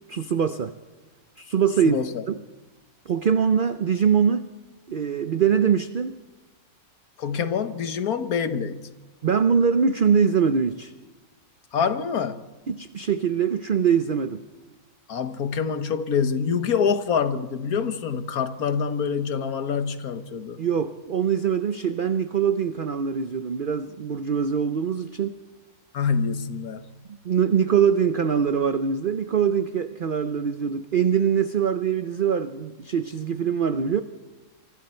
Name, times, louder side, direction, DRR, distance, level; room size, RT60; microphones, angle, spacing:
voice 1, 0.1-0.7 1.4-2.0 2.3-2.4 3.1-4.5 4.9-6.2 9.2-10.9 12.7-14.4 20.6-25.4 27.2-34.0, right 7 dB, 45° right, 0.8 m, -23 dB
voice 2, 1.8-2.2 7.2-8.9 11.7-12.5 15.1-20.6 25.9-26.8, left 6 dB, 80° left, 1.7 m, -26 dB
26.5 x 25.5 x 4.4 m
omnidirectional pair, 1.5 m